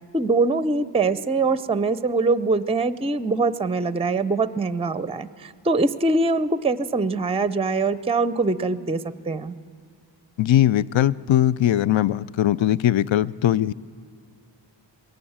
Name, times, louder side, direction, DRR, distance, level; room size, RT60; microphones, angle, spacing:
voice 1, 0.1-9.5, right 3 dB, 15° right, 15 dB, 0.5 m, -23 dB
voice 2, 10.4-13.7, left 12 dB, 80° left, 19 dB, 0.5 m, -20 dB
21.0 x 17.5 x 8.7 m, 2.1 s
wide cardioid pair, 105°, 45 cm